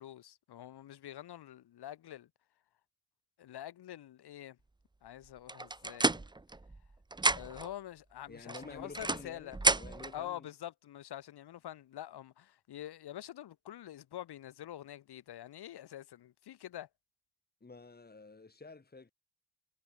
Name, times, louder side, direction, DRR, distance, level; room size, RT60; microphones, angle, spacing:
voice 1, 0.0-2.3 3.4-4.6 5.0-6.2 7.3-9.6 10.1-16.9, left 12 dB, 50° left, 7.7 m, -46 dB
sound 1, 5.5-6.9 7.1-7.7 8.5-10.1, right 2 dB, 10° right, 1.2 m, -31 dB
voice 2, 8.3-10.5 17.6-19.1, left 3 dB, 20° left, 4.2 m, -50 dB
figure-of-eight pair, 45°, 48 cm